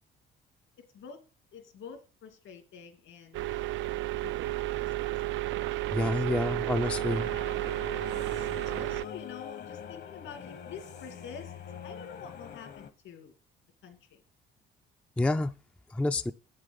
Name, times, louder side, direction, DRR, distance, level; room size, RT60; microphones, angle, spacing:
voice 1, 1.5-3.7 4.2-4.8 5.2-5.7 6.0-6.2 7.1-8.0 8.3-11.6 11.8-13.3 13.8-14.2, left 6 dB, 75° left, 2.5 m, -48 dB
sound 1, 3.3-9.1, right 16 dB, 70° right, 0.4 m, -32 dB
voice 2, 5.9-7.3 15.2-15.5 15.9-16.3, left 2 dB, 5° left, 0.4 m, -28 dB
sound 2, 6.8-12.9, left 8 dB, 55° left, 1.1 m, -44 dB
8.4 x 7.6 x 5.3 m
cardioid pair, 85°, 21 cm